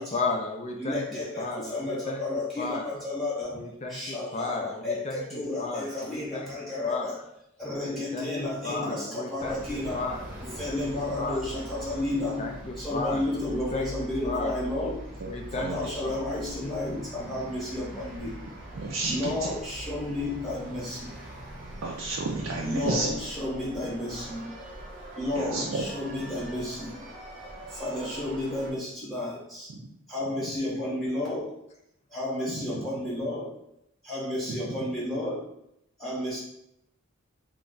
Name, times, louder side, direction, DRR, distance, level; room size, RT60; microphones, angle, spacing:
voice 1, 0.0-2.2 2.6-2.9 3.5-6.5 6.8-7.1 7.8-10.8 11.2-11.4 12.1-13.9 14.2-14.5 15.3-15.7 16.0-16.2, left 3 dB, 30° left, 2 dB, 0.3 m, -34 dB
voice 2, 0.8-7.2 7.6-10.0 10.6-12.5 12.8-15.0 15.5-18.4 19.1-21.1 22.6-24.5 25.2-27.0 27.7-29.7 30.1-31.5 32.1-33.6 34.0-35.5 36.0-36.4, left 1 dB, ahead, -7 dB, 0.9 m, -32 dB
sound 1, 9.4-28.7, right 1 dB, 35° right, 0.7 m, -42 dB
voice 3, 15.6-16.0 18.7-19.5 21.8-23.1 25.4-25.8 29.7-29.9 32.5-32.7 34.6-34.9, right 3 dB, 65° right, -2 dB, 0.4 m, -32 dB
2.4 x 2.2 x 3.7 m, 0.80 s
head